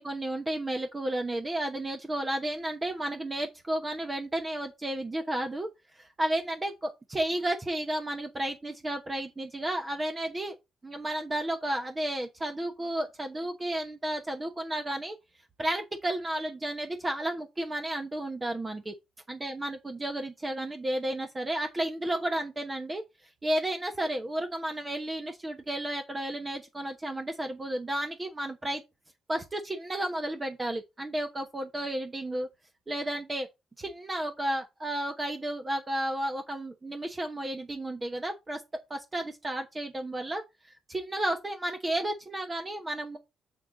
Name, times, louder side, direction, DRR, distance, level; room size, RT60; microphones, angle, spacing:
voice 1, 0.0-5.7 5.9-10.5 10.8-15.2 15.6-18.9 19.3-23.0 23.4-28.8 29.3-32.5 32.9-33.5 33.8-38.6 38.9-40.4 40.9-43.2, right 1 dB, 20° right, 1.0 m, -32 dB
6.5 x 5.5 x 3.9 m
cardioid pair, 90°, 0 cm